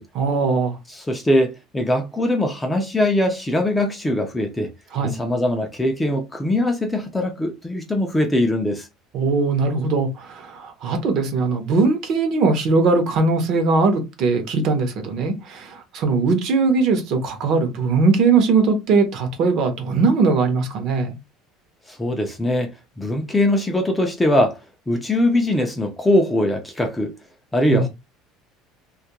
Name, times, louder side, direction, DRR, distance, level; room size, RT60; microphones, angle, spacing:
voice 1, 0.1-0.8 4.9-5.2 9.1-21.1 27.7-27.9, right 4 dB, 50° right, 0.7 m, -20 dB
voice 2, 0.9-4.7 5.1-8.9 21.9-22.7 23.0-24.6 24.9-27.1 27.5-27.9, left 1 dB, 10° left, 0.4 m, -21 dB
2.3 x 2.1 x 2.8 m
cardioid pair, 155°, 0 cm